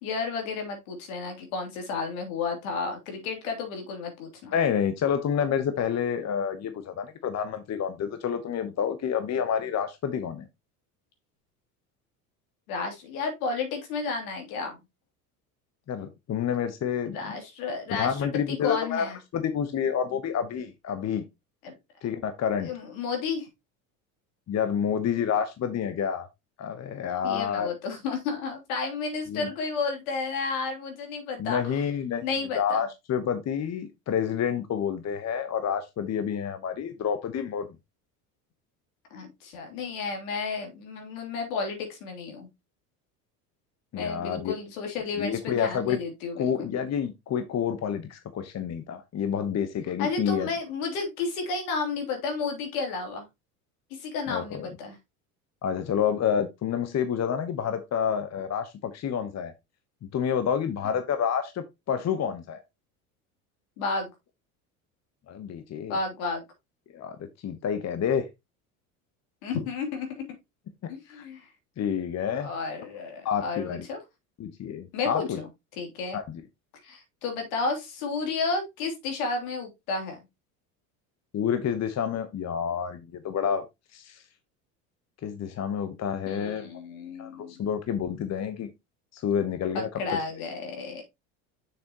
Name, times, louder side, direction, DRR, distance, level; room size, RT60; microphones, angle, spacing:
voice 1, 0.0-4.5 12.7-14.8 17.1-19.2 21.6-21.7 22.6-23.5 27.2-31.8 32.2-32.8 39.1-42.5 43.9-46.7 50.0-53.3 53.9-55.0 63.8-64.1 65.9-66.4 69.4-70.2 70.9-71.5 72.3-74.0 74.9-75.4 75.8-76.2 76.8-80.2 86.3-87.6 89.7-91.0, left 4 dB, 75° left, 3.2 m, -32 dB
voice 2, 4.5-10.5 15.9-17.2 17.9-19.1 19.3-21.2 22.0-22.7 24.5-26.3 26.6-27.7 29.3-29.5 31.4-32.3 32.5-37.7 43.9-44.5 45.2-46.0 46.4-50.5 54.3-54.7 55.6-59.5 60.1-62.6 65.3-66.0 66.9-67.2 67.4-68.3 71.1-71.3 71.8-72.5 73.2-73.9 74.4-75.4 76.1-76.4 81.3-83.6 83.9-84.2 85.2-86.7 87.2-88.7 89.1-89.9, left 8 dB, 35° left, 1.1 m, -28 dB
6.8 x 6.7 x 3.0 m
hypercardioid pair, 80°, 43 cm